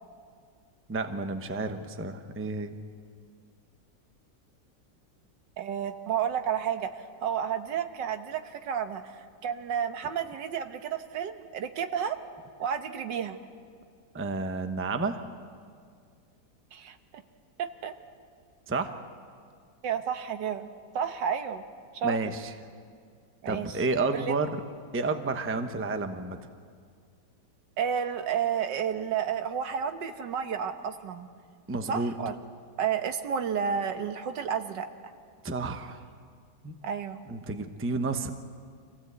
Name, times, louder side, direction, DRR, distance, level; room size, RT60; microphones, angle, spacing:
voice 1, 0.9-2.8 14.1-15.3 18.7-18.9 22.0-22.5 23.5-24.6 24.9-26.4 31.7-32.1 35.4-36.0 36.6-36.7 37.3-38.3, right 3 dB, 10° right, 7 dB, 0.6 m, -30 dB
voice 2, 5.6-12.2 12.6-13.4 16.7-17.2 17.6-17.9 19.8-20.7 20.9-21.6 21.9-22.3 23.4-23.8 24.1-24.3 27.8-31.3 31.9-32.4 32.8-34.9 36.8-37.2, right 8 dB, 85° right, 8 dB, 1.7 m, -31 dB
25.5 x 16.0 x 8.1 m, 2.1 s
omnidirectional pair, 1.9 m